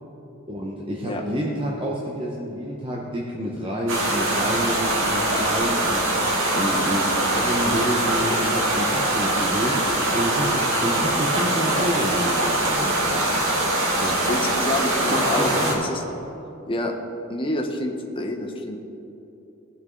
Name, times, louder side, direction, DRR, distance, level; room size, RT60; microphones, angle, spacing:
voice 1, 0.5-13.4 14.0-14.3 15.1-15.9, equal, 25° right, -3 dB, 0.9 m, -29 dB
sound 1, 3.9-15.7, right 1 dB, 65° right, 1.9 m, -23 dB
voice 2, 14.3-16.0 16.7-16.9 17.3-18.8, left 1 dB, 25° left, 2 dB, 1.0 m, -27 dB
18.0 x 6.1 x 3.9 m, 2.9 s
head